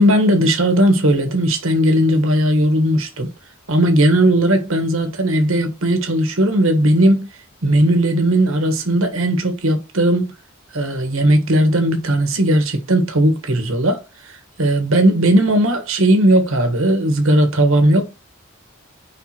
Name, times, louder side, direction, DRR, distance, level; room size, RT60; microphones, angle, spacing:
voice 1, 0.0-3.3 3.7-7.3 7.6-10.3 10.7-18.2, right 1 dB, 70° right, 1.5 m, -17 dB
5.3 x 4.5 x 4.3 m
head